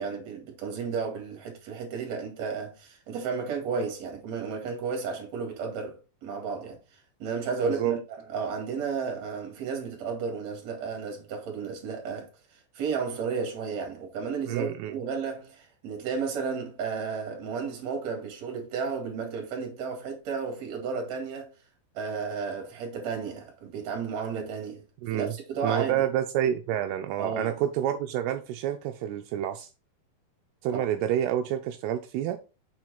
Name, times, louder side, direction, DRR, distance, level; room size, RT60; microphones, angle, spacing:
voice 1, 0.0-6.0 6.2-12.3 12.7-21.5 21.9-24.8 25.1-26.1 27.2-27.5 30.7-30.8, right 5 dB, 50° right, 2.7 m, -33 dB
voice 2, 7.6-8.0 14.5-15.0 25.0-25.3 25.6-29.7 30.6-32.4, right 11 dB, 85° right, 2.5 m, -28 dB
6.9 x 4.5 x 4.0 m
omnidirectional pair, 4.7 m